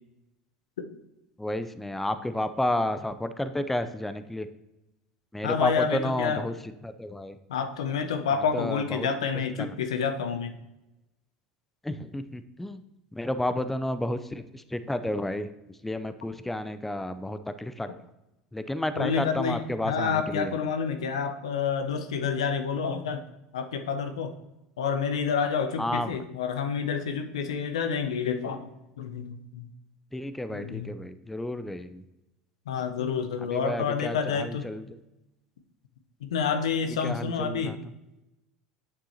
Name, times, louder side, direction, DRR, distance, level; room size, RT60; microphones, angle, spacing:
voice 1, 1.4-4.5 5.3-6.5 6.8-7.4 8.5-9.1 11.8-12.8 13.1-15.5 15.8-17.9 18.5-20.5 25.8-26.2 30.1-32.0 33.5-34.9 37.0-37.8, left 1 dB, 5° left, 11 dB, 0.5 m, -31 dB
voice 2, 5.4-6.4 7.5-10.5 19.0-23.2 23.5-24.3 24.8-29.7 30.5-30.9 32.7-34.7 36.2-37.8, left 6 dB, 80° left, 8 dB, 0.7 m, -29 dB
8.6 x 6.9 x 2.8 m, 0.95 s
hypercardioid pair, 80°, 3 cm